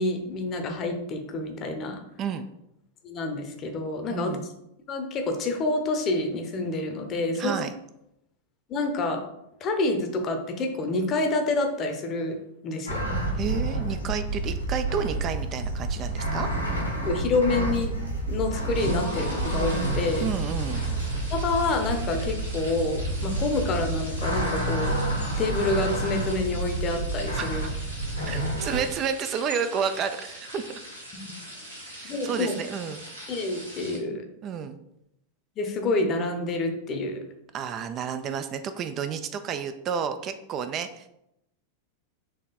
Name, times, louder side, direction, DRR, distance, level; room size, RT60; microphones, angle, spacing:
voice 1, 0.0-2.0 3.0-4.3 4.9-7.6 8.7-9.2 9.6-12.4 12.6-13.1 17.1-17.9 18.3-20.2 21.3-27.6 31.1-31.3 32.0-32.5 33.3-34.2 35.6-37.2, left 2 dB, 30° left, 5 dB, 0.8 m, -28 dB
voice 2, 4.1-4.5 7.3-7.7 13.3-16.5 20.2-20.8 27.4-27.5 28.2-30.8 31.9-33.0 34.4-34.8 37.5-41.1, right 7 dB, 35° right, 9 dB, 0.3 m, -31 dB
sound 1, 12.9-28.8, right 2 dB, 85° left, 1.4 m, -29 dB
sound 2, 18.7-34.0, equal, 90° right, 1.6 m, -42 dB
4.2 x 3.0 x 4.1 m, 0.83 s
figure-of-eight pair, 90°, 0 cm